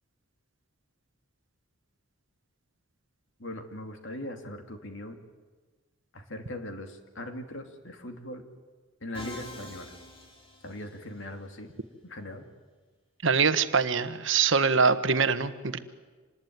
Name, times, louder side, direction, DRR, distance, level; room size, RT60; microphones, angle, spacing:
voice 1, 3.4-5.2 6.1-8.4 9.0-9.9 10.6-11.7 12.0-12.5, left 1 dB, 60° left, 5 dB, 2.7 m, -40 dB
Musical instrument, 9.1-11.2, left 1 dB, 25° left, 4.3 m, -45 dB
voice 2, 13.2-15.8, right 5 dB, 60° right, 11 dB, 1.2 m, -24 dB
26.5 x 20.0 x 9.5 m, 1.4 s
head